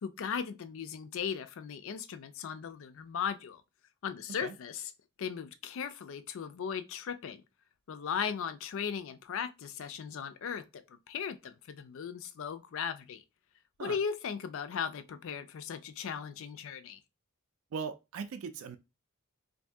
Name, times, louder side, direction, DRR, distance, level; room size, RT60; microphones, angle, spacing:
voice 1, 0.0-3.6 4.0-4.9 5.2-7.4 7.9-13.2 13.8-17.0, left 7 dB, 65° left, 0.4 m, -37 dB
voice 2, 17.7-18.8, right 5 dB, 70° right, 0.3 m, -39 dB
2.7 x 2.6 x 3.4 m
head